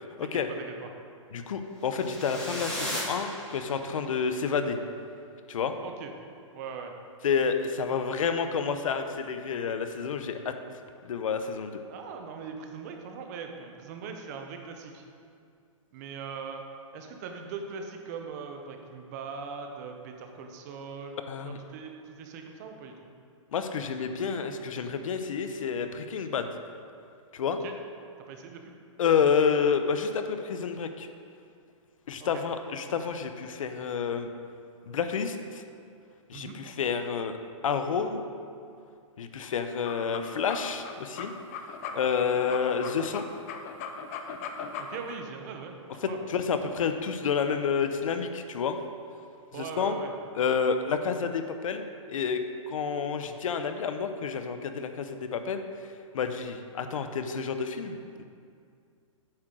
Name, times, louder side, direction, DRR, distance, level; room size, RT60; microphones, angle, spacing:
voice 1, 0.2-0.9 5.8-6.1 6.5-6.9 11.9-15.0 15.9-16.6 16.9-23.1 27.5-27.8 28.3-28.7 32.2-32.4 36.3-36.6 44.8-46.2 49.5-50.1, right 5 dB, 30° right, 4 dB, 0.7 m, -41 dB
voice 2, 1.3-4.8 5.5-5.7 7.2-10.5 11.0-11.8 21.3-21.6 23.5-26.5 27.3-27.6 29.0-31.1 32.1-34.3 34.9-35.6 36.3-37.4 37.6-38.3 39.2-41.3 41.9-43.3 46.0-48.8 49.5-50.0 50.3-52.4 52.7-55.6 56.1-58.2, left 6 dB, 75° left, 8 dB, 0.7 m, -29 dB
sound 1, 1.9-4.1, equal, 5° left, 1.3 m, -36 dB
sound 2, 39.7-45.2, left 6 dB, 25° left, 0.4 m, -39 dB
8.7 x 6.1 x 3.8 m, 2.3 s
hypercardioid pair, 160°, 17 cm